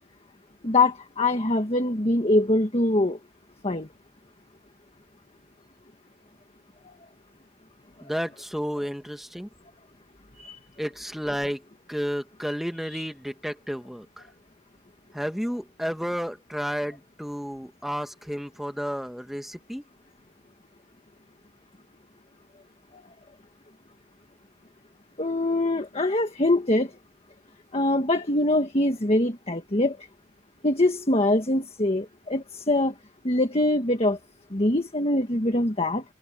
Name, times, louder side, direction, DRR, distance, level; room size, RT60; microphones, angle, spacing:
voice 1, 0.6-3.2 3.6-3.9 10.4-10.6 12.9-13.0 25.2-26.9 27.7-30.0 30.6-32.9 33.2-34.2 34.5-36.0, left 2 dB, 30° left, 1.6 m, -23 dB
voice 2, 8.0-9.5 10.8-11.6 11.9-14.2 15.1-19.8, equal, ahead, 1.7 m, -31 dB
head